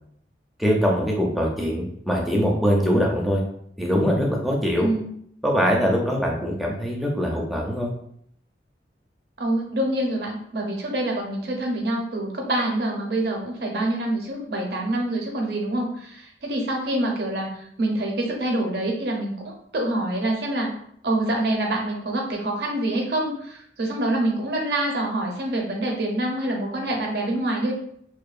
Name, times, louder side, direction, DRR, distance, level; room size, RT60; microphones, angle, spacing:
voice 1, 0.6-3.4 3.8-4.9 5.4-7.9, equal, ahead, -2 dB, 0.4 m, -22 dB
voice 2, 4.8-5.1 9.4-20.7 21.0-27.7, right 1 dB, 60° right, 0 dB, 0.6 m, -26 dB
2.7 x 2.1 x 2.4 m, 0.69 s
head